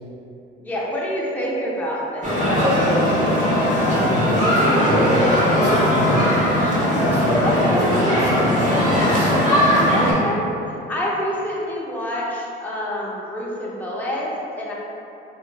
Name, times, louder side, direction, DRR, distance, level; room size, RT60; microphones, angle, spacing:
voice 1, 0.6-2.6 7.4-7.9 9.9-10.6 10.9-14.7, equal, 10° left, -6 dB, 0.7 m, -27 dB
sound 1, 2.2-10.1, equal, 40° right, 1.4 m, -18 dB
voice 2, 3.8-6.3 6.9-9.3, left 1 dB, 60° left, -4 dB, 0.9 m, -26 dB
6.4 x 2.7 x 2.3 m, 2.8 s
cardioid pair, 90°, 20 cm